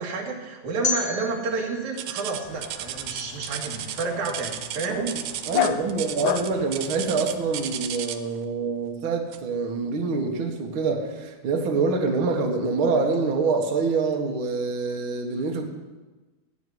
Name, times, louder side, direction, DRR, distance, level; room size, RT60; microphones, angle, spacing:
voice 1, 0.0-5.1, right 4 dB, 70° right, 1 dB, 3.2 m, -30 dB
sound 1, 0.8-3.8, left 4 dB, 35° left, 2.2 m, -33 dB
sound 2, 2.0-8.4 9.3-9.6 10.1-10.2 10.9-11.0, right 11 dB, 90° right, 2.3 m, -34 dB
Dog, 2.4-7.8, left 12 dB, 75° left, 2.1 m, -33 dB
voice 2, 5.5-15.7, right 4 dB, 50° right, 1 dB, 2.0 m, -26 dB
16.0 x 7.1 x 9.6 m, 1.2 s
omnidirectional pair, 3.5 m